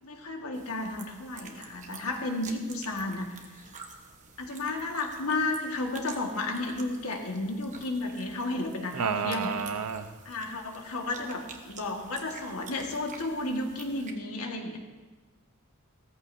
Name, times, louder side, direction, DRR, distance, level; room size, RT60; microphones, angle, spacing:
voice 1, 0.0-3.6 4.4-9.5 10.2-14.8, left 2 dB, 70° left, 2 dB, 1.7 m, -33 dB
sound 1, 0.5-14.1, right 4 dB, 35° right, 1.1 m, -49 dB
voice 2, 8.9-10.1, right 6 dB, 90° right, 9 dB, 0.8 m, -30 dB
16.0 x 14.0 x 2.7 m, 1.3 s
head